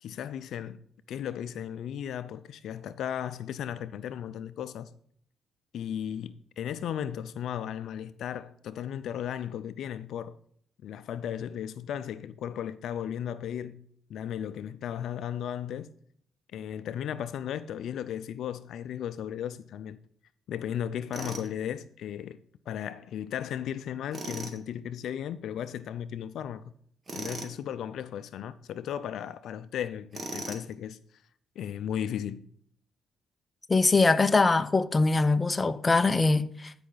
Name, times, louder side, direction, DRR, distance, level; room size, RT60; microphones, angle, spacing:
voice 1, 0.0-0.8 1.1-4.9 5.7-10.3 10.8-13.8 14.1-15.9 16.5-20.0 20.5-22.4 22.7-26.6 27.1-31.0 31.6-32.5, left 9 dB, 75° left, 0.5 m, -35 dB
Tools, 21.1-21.5 24.1-24.6 27.1-27.6 30.1-30.7, right 2 dB, 35° right, 1.9 m, -38 dB
voice 2, 33.7-36.7, left 3 dB, 25° left, 0.7 m, -23 dB
15.0 x 5.7 x 4.0 m
cardioid pair, 90°, 0 cm